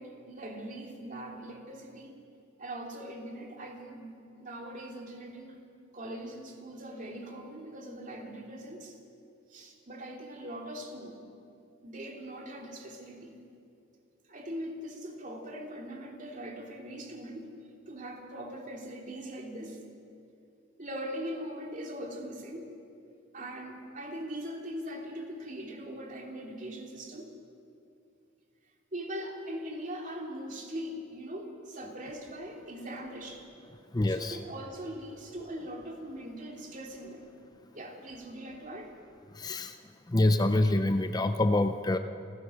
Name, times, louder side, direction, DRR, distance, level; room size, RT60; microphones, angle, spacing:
voice 1, 0.0-2.2 2.6-5.6 5.9-9.0 9.5-11.2 11.8-13.4 14.3-17.5 17.9-19.8 20.8-22.7 23.3-27.3 28.9-33.5 34.1-37.3 37.7-38.9, right 1 dB, 40° right, 1 dB, 2.9 m, -41 dB
voice 2, 33.9-34.4 39.3-39.8 40.1-42.0, left 1 dB, 20° left, 8 dB, 0.6 m, -26 dB
27.5 x 16.0 x 6.4 m, 2.5 s
head